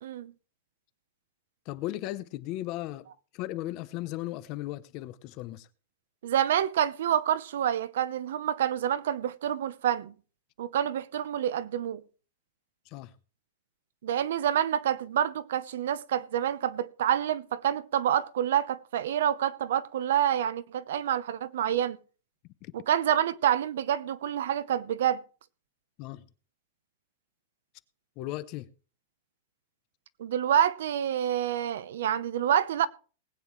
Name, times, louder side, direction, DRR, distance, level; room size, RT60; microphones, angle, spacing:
voice 1, 0.0-0.3 6.2-10.1 10.6-12.0 14.0-22.0 22.7-25.2 30.2-32.9, right 10 dB, 65° right, 0.8 m, -27 dB
voice 2, 1.7-3.1 3.3-5.7 12.9-13.1 22.6-22.7 26.0-26.2 28.2-28.7, left 16 dB, 35° left, 0.7 m, -36 dB
19.5 x 9.3 x 3.2 m
supercardioid pair, 170°, 0 cm